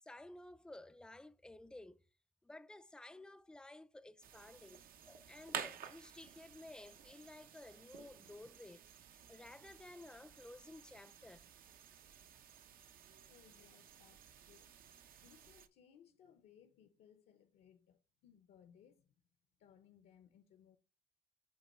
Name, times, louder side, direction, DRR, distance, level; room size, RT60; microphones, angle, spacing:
voice 1, 0.0-2.0 2.4-11.4, left 2 dB, 5° left, 0.4 m, -54 dB
sound 1, 4.2-15.7, right 8 dB, 60° right, 0.7 m, -52 dB
voice 2, 13.3-19.2 19.6-20.8, left 9 dB, 70° left, 0.9 m, -65 dB
7.8 x 3.1 x 4.3 m
cardioid pair, 110°, 17 cm